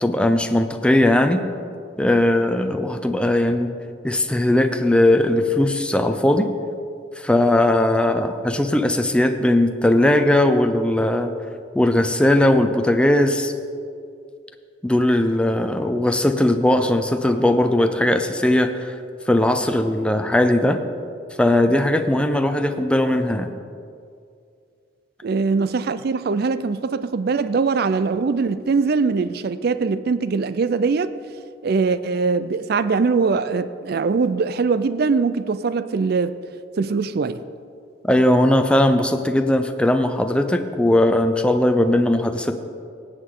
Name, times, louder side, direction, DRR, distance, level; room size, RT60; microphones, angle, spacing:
voice 1, 0.0-1.4 2.0-3.8 4.0-6.5 7.2-11.3 11.7-13.5 14.8-19.0 19.3-20.8 21.4-23.5 38.0-42.6, left 1 dB, 5° left, 7 dB, 0.5 m, -19 dB
voice 2, 25.2-31.1 31.6-36.3 36.8-37.4, right 4 dB, 55° right, 14 dB, 0.4 m, -22 dB
17.5 x 8.0 x 3.8 m, 2.3 s
head